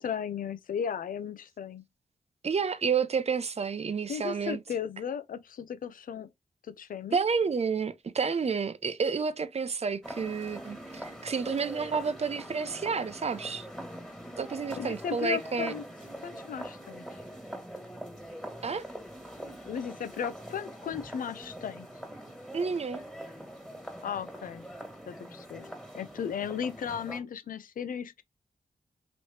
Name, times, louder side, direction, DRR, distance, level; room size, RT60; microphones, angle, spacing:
voice 1, 0.0-1.8 4.1-6.3 6.8-7.2 14.8-15.8 16.2-17.2 19.7-21.9 24.0-24.6 25.1-25.7 25.9-28.2, left 8 dB, 80° left, 0.6 m, -35 dB
voice 2, 2.4-4.6 7.1-13.7 14.4-15.7 18.6-18.8 22.5-23.0, right 5 dB, 50° right, 0.6 m, -30 dB
sound 1, 10.0-27.2, equal, ahead, 1.8 m, -43 dB
3.2 x 3.1 x 4.2 m
cardioid pair, 50°, 14 cm